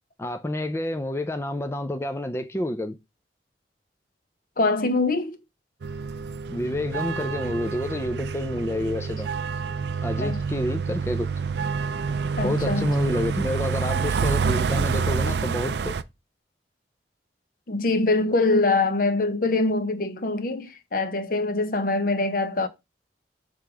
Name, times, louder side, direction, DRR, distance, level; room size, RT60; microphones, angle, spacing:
voice 1, 0.2-3.0 6.5-9.3 10.0-11.3 12.4-16.0, left 1 dB, 15° left, 0.4 m, -29 dB
voice 2, 4.6-5.4 10.2-10.4 12.4-12.9 17.7-22.7, left 3 dB, 50° left, 0.7 m, -24 dB
sound 1, 5.8-16.0, right 5 dB, 70° right, 0.4 m, -27 dB
6.5 x 3.4 x 4.9 m
head